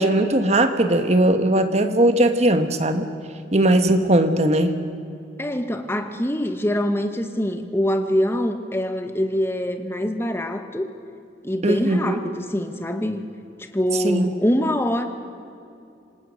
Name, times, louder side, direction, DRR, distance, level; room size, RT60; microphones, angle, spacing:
voice 1, 0.0-3.1 3.5-4.8 11.6-12.2 14.0-14.3, right 1 dB, 35° right, 8 dB, 1.3 m, -19 dB
voice 2, 5.4-10.9 11.4-13.2 13.6-15.1, equal, 15° left, 7 dB, 1.3 m, -24 dB
26.5 x 19.0 x 6.4 m, 2.6 s
head